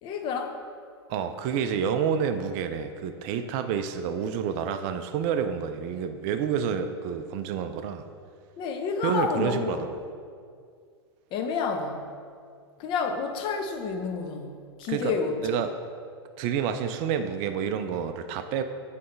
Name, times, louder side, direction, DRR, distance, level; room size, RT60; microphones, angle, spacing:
voice 1, 0.0-0.6 8.6-9.9 11.3-12.1 12.8-15.4, left 5 dB, 35° left, 5 dB, 0.7 m, -30 dB
voice 2, 1.1-8.0 9.0-9.8 14.9-15.1 15.4-15.7 16.4-18.6, right 7 dB, 40° right, 9 dB, 0.4 m, -28 dB
7.6 x 3.2 x 5.2 m, 2.2 s
figure-of-eight pair, 95°, 14 cm